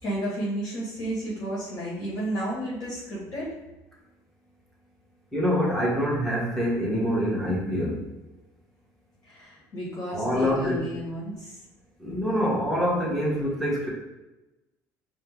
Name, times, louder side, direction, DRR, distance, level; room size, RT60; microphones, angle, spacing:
voice 1, 0.0-3.6 9.2-11.6, right 1 dB, 50° left, -6 dB, 1.3 m, -32 dB
voice 2, 5.3-8.0 10.1-10.8 12.0-13.9, equal, 5° left, -5 dB, 1.3 m, -25 dB
4.4 x 2.2 x 3.4 m, 1.0 s
supercardioid pair, 95°, 8 cm